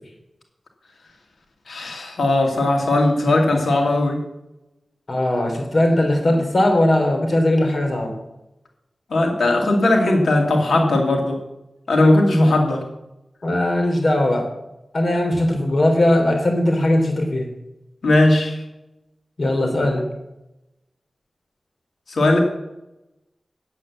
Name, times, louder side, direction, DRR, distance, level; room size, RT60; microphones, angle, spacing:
voice 1, 1.7-4.2 9.1-11.4 11.9-12.8 18.0-18.6 22.1-22.4, left 2 dB, 85° left, 2 dB, 2.6 m, -18 dB
voice 2, 5.1-8.2 13.4-14.5 14.9-17.5 19.4-20.0, left 1 dB, 60° left, 3 dB, 3.4 m, -19 dB
8.9 x 8.3 x 7.4 m, 0.92 s
cardioid pair, 50°, 0 cm